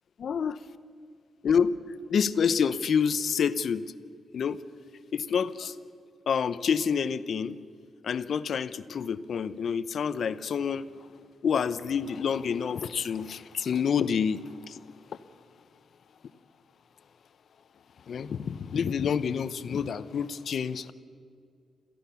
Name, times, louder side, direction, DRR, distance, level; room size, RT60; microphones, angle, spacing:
voice 1, 0.2-0.5 1.4-1.8 2.1-3.8 4.3-4.6 5.1-5.8 6.3-7.6 8.0-11.1 11.4-15.2 18.0-20.9, left 7 dB, 55° left, 0.7 m, -28 dB
27.5 x 15.0 x 7.0 m
wide cardioid pair, 160°, 0 cm